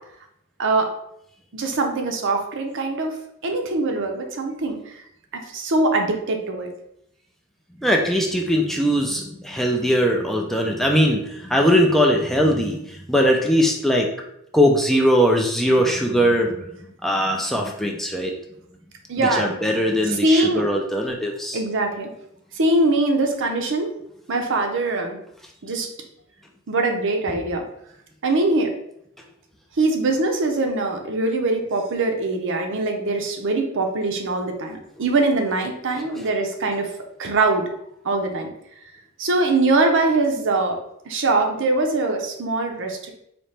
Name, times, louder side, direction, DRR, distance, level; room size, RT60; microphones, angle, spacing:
voice 1, 0.6-0.9 1.5-3.1 3.4-5.0 5.3-6.7 19.1-19.5 20.0-20.6 21.5-22.1 22.5-23.9 24.3-25.2 25.6-25.9 26.7-27.6 28.2-28.7 29.8-36.9 37.2-37.7 38.0-38.5 39.2-40.8 41.1-43.1, right 2 dB, 60° right, 4 dB, 0.6 m, -22 dB
voice 2, 7.8-14.1 14.5-16.6 17.0-18.3 19.2-21.6, equal, ahead, 0 dB, 0.3 m, -20 dB
4.2 x 2.9 x 3.2 m, 0.75 s
head